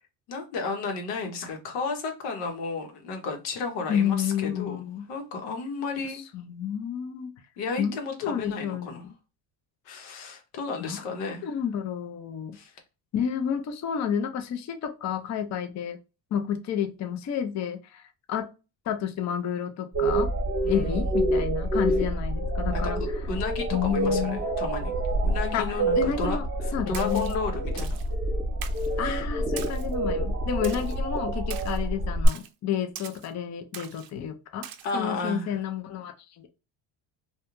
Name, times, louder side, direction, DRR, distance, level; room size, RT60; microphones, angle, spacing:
voice 1, 0.3-4.8 5.1-6.2 7.6-9.0 9.9-11.5 12.5-12.7 20.6-21.0 22.7-22.8 23.3-24.9 25.2-26.4 26.9-28.0 34.8-35.6, left 4 dB, 90° left, 0.9 m, -33 dB
voice 2, 3.9-5.1 6.3-7.3 7.8-9.1 10.8-11.0 11.4-12.6 13.1-16.0 16.3-18.5 18.9-20.3 20.7-23.0 23.7-24.4 25.5-26.5 26.7-27.3 29.0-34.7 34.9-36.5, left 8 dB, 35° left, 0.5 m, -30 dB
sound 1, 19.9-32.3, right 1 dB, 25° right, 0.9 m, -27 dB
Splash splatter, 26.9-27.4 27.8-28.1 28.6-28.9 29.6-29.9 30.6-31.0 31.5-31.8 32.3-32.5 33.0-33.3 33.7-34.1 34.6-34.9, right 10 dB, 45° right, 0.5 m, -41 dB
2.4 x 2.2 x 2.9 m
supercardioid pair, 85°, 49 cm